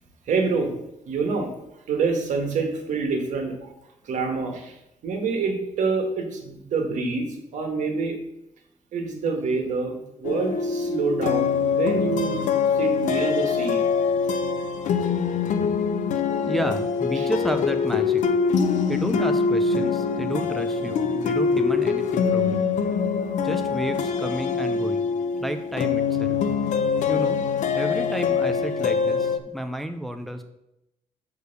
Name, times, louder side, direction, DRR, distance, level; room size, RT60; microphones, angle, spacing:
voice 1, 0.3-0.7 1.0-1.5 1.9-3.7 4.0-4.8 5.0-7.3 7.5-8.2 8.9-12.4 12.7-13.8 17.2-17.3, right 4 dB, 75° right, 3 dB, 1.7 m, -26 dB
sound 1, 10.2-29.4, left 5 dB, 80° left, 0.6 m, -24 dB
voice 2, 16.5-18.2 18.9-22.6 23.4-25.1 25.4-26.4 27.1-27.4 27.7-30.4, equal, ahead, 7 dB, 0.5 m, -31 dB
6.7 x 4.7 x 6.6 m, 0.86 s
wide cardioid pair, 160°, 13 cm